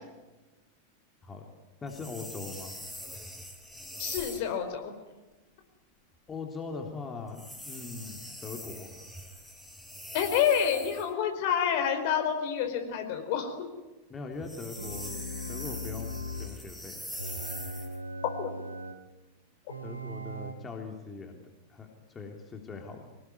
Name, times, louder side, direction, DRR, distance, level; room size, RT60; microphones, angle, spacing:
voice 1, 1.8-2.7 6.3-8.9 14.1-15.2 15.5-17.0 19.8-21.4 21.7-23.0, left 4 dB, 20° left, 2 dB, 3.3 m, -41 dB
sound 1, 1.9-4.5 7.3-11.1 14.3-18.0, equal, 5° left, 4.7 m, -43 dB
voice 2, 4.0-4.9 10.1-13.5 18.4-18.5, left 8 dB, 50° left, 6 dB, 4.6 m, -28 dB
sound 2, 14.8-16.6 17.2-19.0 19.7-20.5, equal, 85° right, 2.7 m, -39 dB
25.5 x 19.5 x 9.8 m, 1.1 s
figure-of-eight pair, 90°, 0 cm